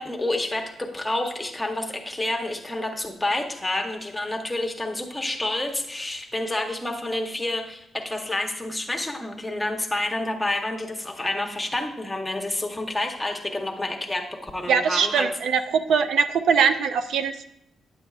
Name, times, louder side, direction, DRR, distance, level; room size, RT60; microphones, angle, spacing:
voice 1, 0.0-15.3, left 1 dB, 10° left, 2 dB, 0.8 m, -29 dB
voice 2, 14.7-17.4, right 6 dB, 85° right, 10 dB, 0.4 m, -22 dB
9.5 x 7.8 x 2.3 m, 0.79 s
wide cardioid pair, 155°, 0 cm